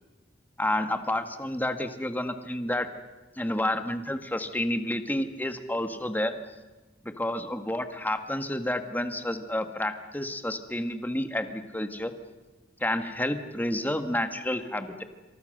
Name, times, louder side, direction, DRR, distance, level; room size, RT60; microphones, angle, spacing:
voice 1, 0.6-2.9 3.4-6.3 7.0-12.1 12.8-15.0, left 1 dB, 10° left, 8 dB, 1.7 m, -30 dB
27.5 x 26.0 x 6.7 m, 1.2 s
head